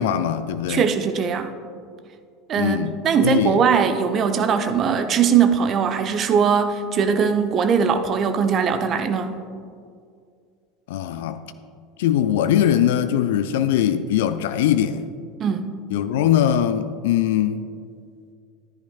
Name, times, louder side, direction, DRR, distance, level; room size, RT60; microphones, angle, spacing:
voice 1, 0.0-0.9 2.6-3.6 10.9-11.4 12.0-15.0 15.9-17.6, left 10 dB, 65° left, 0.3 m, -21 dB
voice 2, 0.7-1.5 2.5-2.8 3.0-9.3 15.4-15.6, right 6 dB, 40° right, 0.7 m, -20 dB
14.0 x 10.5 x 2.3 m
figure-of-eight pair, 75°, 0 cm